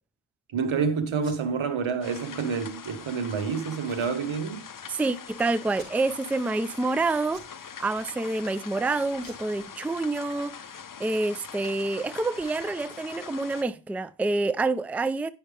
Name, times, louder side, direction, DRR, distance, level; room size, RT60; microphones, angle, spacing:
voice 1, 0.5-4.6, right 5 dB, 80° right, 1.3 m, -28 dB
Packing tape duct tape, 1.1-1.4 1.8-1.9 2.2-2.3 2.8-3.1 3.8-4.6 5.0-5.1 5.7-6.4 6.7-6.9 7.3-7.6 7.9-8.5 9.1-10.3 10.6-10.7 11.0-13.7, right 2 dB, 45° right, 3.6 m, -54 dB
sound 1, 2.0-13.6, left 7 dB, 45° left, 0.7 m, -43 dB
voice 2, 4.9-7.4 7.8-10.5 11.0-15.3, right 3 dB, 5° right, 0.4 m, -27 dB
10.0 x 5.6 x 3.3 m
cardioid pair, 50°, 47 cm